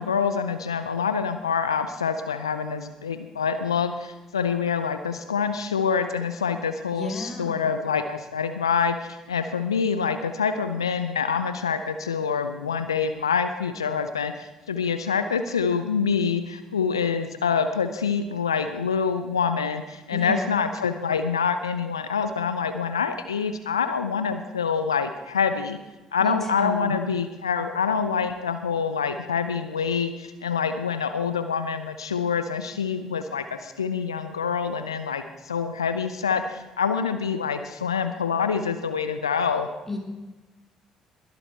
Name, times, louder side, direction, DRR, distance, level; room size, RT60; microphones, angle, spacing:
voice 1, 0.0-25.8 26.1-39.7, left 6 dB, 85° left, 9 dB, 0.5 m, -26 dB
voice 2, 6.9-7.6 20.1-20.6 26.2-27.1 39.9-40.0, left 1 dB, 10° left, 1 dB, 3.4 m, -32 dB
21.0 x 8.0 x 4.4 m, 1.1 s
figure-of-eight pair, 50°, 3 cm